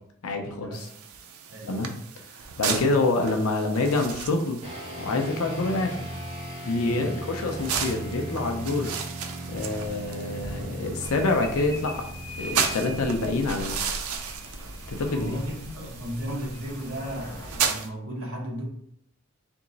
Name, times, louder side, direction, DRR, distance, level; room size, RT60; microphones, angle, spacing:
voice 1, 0.2-0.9 1.7-1.9 2.6-4.6 5.0-6.1 6.6-8.9 9.5-12.0 12.4-13.8 14.9-15.4, left 2 dB, 85° left, 4 dB, 0.6 m, -26 dB
sound 1, 0.7-17.9, right 6 dB, 90° right, 0.5 m, -35 dB
sound 2, 4.6-14.3, right 1 dB, 30° right, 0.9 m, -38 dB
sound 3, 11.0-17.6, left 1 dB, 15° left, 0.6 m, -41 dB
voice 2, 15.1-18.6, equal, 70° right, -2 dB, 1.2 m, -35 dB
3.5 x 3.0 x 4.0 m, 0.71 s
head